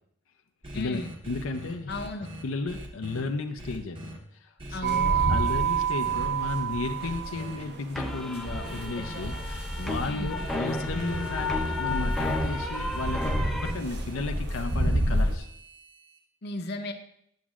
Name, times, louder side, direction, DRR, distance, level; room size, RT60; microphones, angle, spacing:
sound 1, 0.6-3.2 3.6-4.2 4.6-5.1 5.7-6.3 7.0-7.6 8.6-9.2 10.3-16.2, equal, 25° right, 0.9 m, -41 dB
voice 1, 0.7-1.1 1.9-2.3 4.7-5.6 10.0-10.4 16.4-16.9, left 2 dB, 55° left, 4 dB, 0.7 m, -36 dB
voice 2, 1.3-1.9 2.4-4.0 4.4-15.5, left 3 dB, 90° left, 5 dB, 0.6 m, -34 dB
sound 2, 4.8-15.4, right 3 dB, 55° right, 1.0 m, -29 dB
sound 3, 7.9-13.7, left 2 dB, ahead, 0.6 m, -33 dB
10.5 x 7.1 x 2.4 m, 0.73 s
head